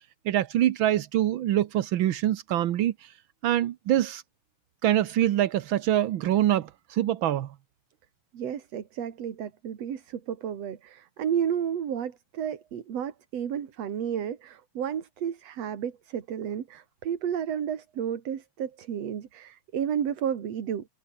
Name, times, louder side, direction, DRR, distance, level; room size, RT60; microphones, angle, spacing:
voice 1, 0.2-2.9 3.4-4.2 4.8-7.5, right 12 dB, 85° right, 1.0 m, -24 dB
voice 2, 8.3-20.9, right 8 dB, 60° right, 3.0 m, -32 dB
omnidirectional pair, 3.4 m